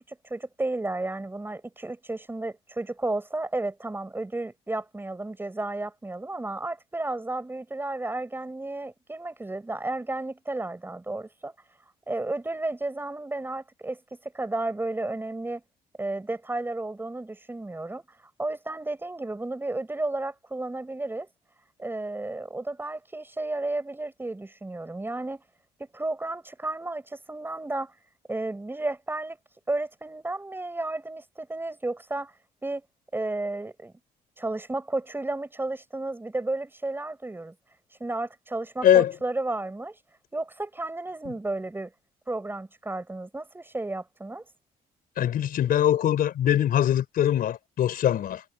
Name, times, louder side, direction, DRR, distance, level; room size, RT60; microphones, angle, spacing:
voice 1, 0.1-11.5 12.1-15.6 16.0-18.0 18.4-21.3 21.8-25.4 25.8-27.9 28.3-29.4 29.7-32.3 32.6-32.8 33.1-33.9 34.4-37.5 38.0-40.0 40.3-41.9 42.3-44.4, right 2 dB, 10° right, 6.6 m, -32 dB
voice 2, 45.2-48.4, left 10 dB, 60° left, 4.3 m, -22 dB
cardioid pair, 110°, 17 cm